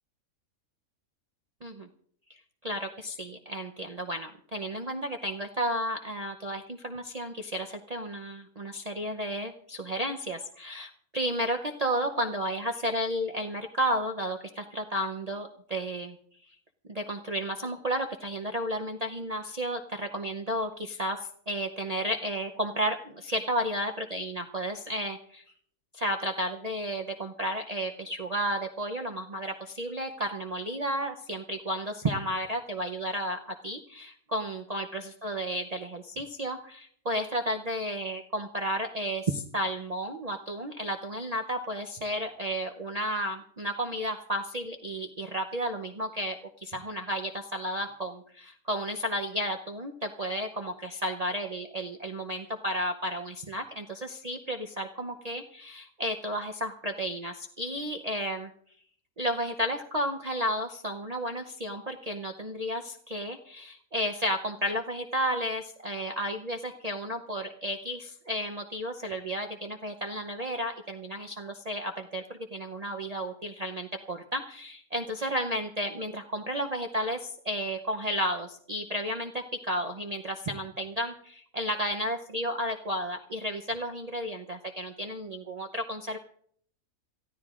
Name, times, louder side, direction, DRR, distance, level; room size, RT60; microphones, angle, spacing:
voice 1, 2.6-16.2 16.9-21.2 21.5-25.4 25.9-58.5 59.2-86.2, equal, 40° right, 1 dB, 0.6 m, -32 dB
28.0 x 15.0 x 2.4 m, 0.63 s
omnidirectional pair, 1.5 m